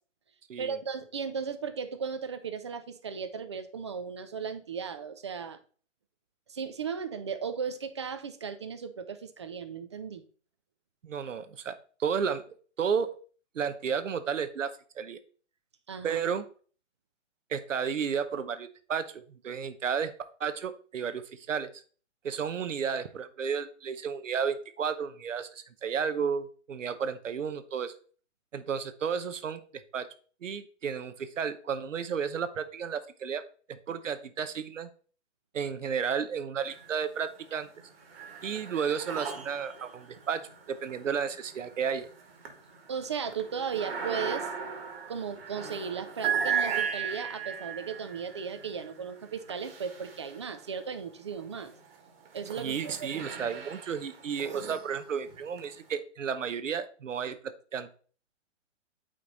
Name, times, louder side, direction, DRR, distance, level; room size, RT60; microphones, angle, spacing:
voice 1, 0.6-5.6 6.5-10.2 15.9-16.2 42.9-44.5 45.1-51.7 52.3-53.1, right 6 dB, 25° right, 10 dB, 0.4 m, -36 dB
voice 2, 11.0-12.4 12.8-13.1 13.5-15.2 16.0-16.4 17.5-20.1 20.4-21.7 22.2-27.9 28.5-30.1 30.4-33.4 33.7-34.9 35.5-37.7 38.4-42.1 52.6-57.9, right 7 dB, 85° right, 11 dB, 0.9 m, -32 dB
sound 1, 36.6-37.3 37.6-50.8 51.5-55.9, right 7 dB, 50° right, 1.6 m, -37 dB
8.8 x 3.3 x 4.0 m, 0.41 s
hypercardioid pair, 145°, 37 cm